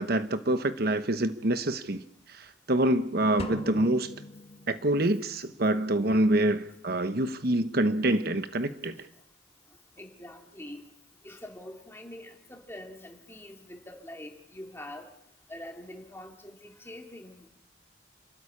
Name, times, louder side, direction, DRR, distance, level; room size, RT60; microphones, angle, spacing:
voice 1, 0.0-2.0 2.3-4.1 4.7-8.9, right 1 dB, 50° right, 10 dB, 1.0 m, -26 dB
sound 1, 3.4-5.2, left 2 dB, 30° left, 1.2 m, -40 dB
voice 2, 10.0-10.8 11.2-15.1 15.5-17.5, left 1 dB, 10° left, 2 dB, 2.7 m, -44 dB
28.5 x 13.5 x 9.9 m, 0.78 s
head